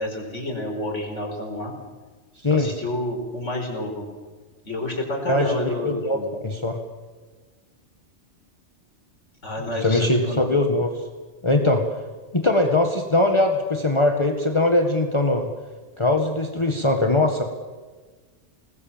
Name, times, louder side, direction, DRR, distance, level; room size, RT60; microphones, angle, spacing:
voice 1, 0.0-1.7 2.5-4.0 4.6-6.3 9.4-10.5, left 1 dB, 85° left, 1 dB, 5.7 m, -29 dB
voice 2, 5.3-6.8 9.7-11.0 11.4-12.0 12.3-15.5 16.0-17.4, left 2 dB, 25° left, 4 dB, 1.7 m, -21 dB
28.0 x 20.5 x 7.4 m, 1.4 s
omnidirectional pair, 1.2 m